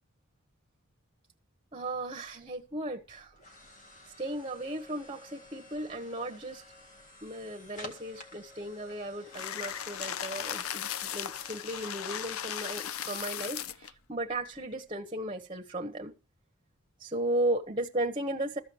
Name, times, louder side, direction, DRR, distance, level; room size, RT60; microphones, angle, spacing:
voice 1, 1.7-3.3 4.2-6.6 7.2-16.1 17.0-18.6, right 1 dB, 25° right, 1.1 m, -35 dB
sound 1, 2.0-14.9, left 1 dB, 40° left, 2.0 m, -53 dB
sound 2, 9.3-13.9, left 10 dB, 80° left, 0.5 m, -37 dB
13.5 x 5.2 x 7.8 m
head